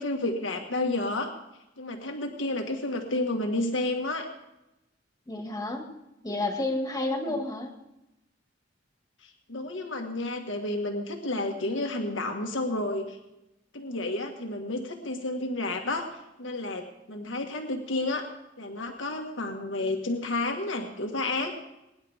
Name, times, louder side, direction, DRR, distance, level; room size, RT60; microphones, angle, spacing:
voice 1, 0.0-1.3 1.8-4.3 7.1-7.4 9.2-13.2 13.7-16.1 16.4-18.3 18.6-21.5, left 2 dB, 85° left, 3 dB, 1.6 m, -31 dB
voice 2, 5.3-5.8 6.2-7.7, left 2 dB, 20° left, 3 dB, 2.1 m, -30 dB
22.5 x 10.5 x 3.5 m, 0.91 s
head